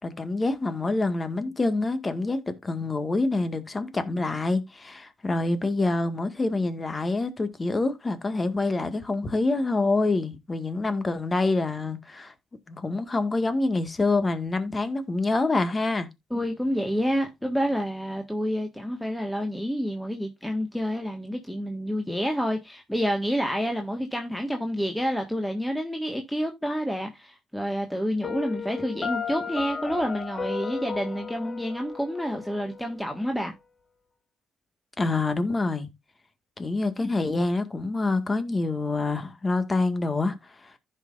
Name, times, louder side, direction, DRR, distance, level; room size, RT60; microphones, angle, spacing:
voice 1, 0.0-12.3 12.7-16.1 35.0-35.9 36.6-40.7, left 3 dB, 30° left, 1.8 m, -26 dB
voice 2, 16.3-33.5, equal, 5° left, 1.6 m, -28 dB
Piano, 28.2-33.2, left 5 dB, 45° left, 1.7 m, -34 dB
15.0 x 5.7 x 2.6 m
hypercardioid pair, 55°, 0 cm